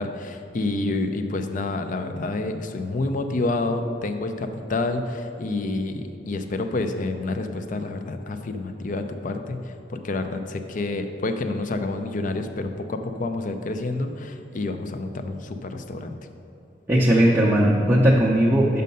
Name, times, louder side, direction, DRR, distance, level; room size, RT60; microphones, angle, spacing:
voice 1, 0.0-16.2, left 2 dB, 45° left, 7 dB, 0.5 m, -28 dB
voice 2, 16.9-18.8, right 1 dB, 15° right, -6 dB, 0.5 m, -18 dB
6.4 x 5.4 x 5.3 m, 2.6 s
head